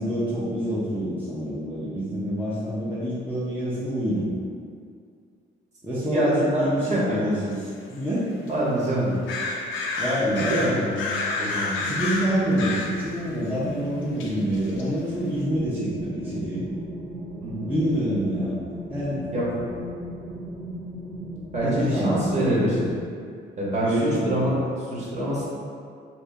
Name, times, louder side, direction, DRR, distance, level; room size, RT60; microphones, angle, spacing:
voice 1, 0.0-4.3 5.8-8.3 10.0-10.5 11.8-16.6 17.7-18.6 18.9-19.3 21.6-22.9 23.8-24.4, equal, 10° right, -10 dB, 0.7 m, -27 dB
voice 2, 6.1-6.6 6.9-7.2 8.5-9.1 10.3-11.0 11.3-11.7 17.4-17.8 19.3-19.5 21.5-22.8 23.6-25.4, right 1 dB, 35° right, -7 dB, 1.1 m, -25 dB
sound 1, 7.5-7.6 7.9-8.0 8.5-8.6 9.3-13.1 14.2-14.9, left 3 dB, 80° left, 0.5 m, -29 dB
sound 2, 11.8-23.0, equal, 80° right, 0.7 m, -37 dB
2.7 x 2.6 x 3.5 m, 2.3 s
cardioid pair, 90°, 20 cm